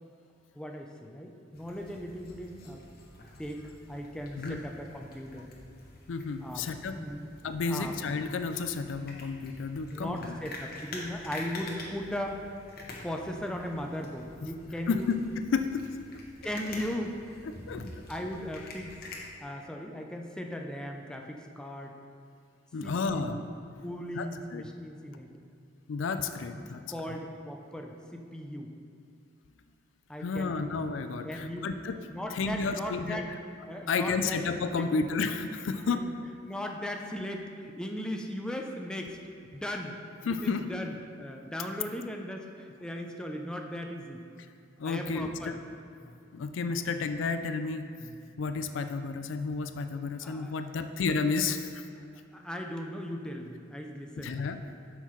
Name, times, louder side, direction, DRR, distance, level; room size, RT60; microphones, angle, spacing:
voice 1, 0.6-2.9 3.4-3.6 3.9-5.5 6.4-6.7 7.0-7.3 7.7-8.1 9.9-12.4 13.0-15.1 16.4-17.2 18.1-19.0 19.4-22.0 22.8-23.4 23.8-25.3 26.5-28.7 30.1-30.9 31.2-31.7 32.1-33.3 33.7-34.4 34.7-34.9 35.8-36.1 36.4-39.2 39.5-40.0 40.3-44.2 44.8-45.6 45.9-46.2 48.0-48.2 50.2-50.7 52.3-54.4, equal, 5° left, 2 dB, 0.4 m, -38 dB
sound 1, 1.5-19.2, left 2 dB, 50° left, 0.9 m, -47 dB
voice 2, 6.1-7.0 7.4-10.4 14.9-15.9 17.7-17.9 22.7-23.4 24.1-24.7 25.9-26.8 30.2-32.0 32.3-33.2 33.9-36.0 40.3-40.6 44.8-45.5 46.3-47.9 48.4-51.8 54.2-54.6, left 4 dB, 80° left, 8 dB, 0.4 m, -31 dB
8.1 x 5.7 x 3.1 m, 2.4 s
head